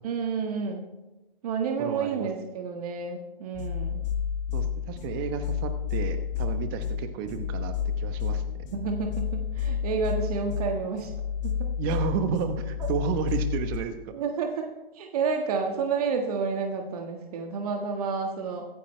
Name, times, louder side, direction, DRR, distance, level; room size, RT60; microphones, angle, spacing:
voice 1, 0.0-0.9 1.4-4.0 8.7-11.1 11.4-11.7 14.1-18.7, right 5 dB, 40° right, 3 dB, 1.7 m, -30 dB
voice 2, 1.8-2.3 4.5-8.6 11.8-14.2, right 6 dB, 25° right, 9 dB, 1.0 m, -32 dB
sound 1, 3.5-13.8, left 7 dB, 30° left, 1.4 m, -30 dB
24.0 x 9.7 x 3.3 m, 1.1 s
hypercardioid pair, 145°, 29 cm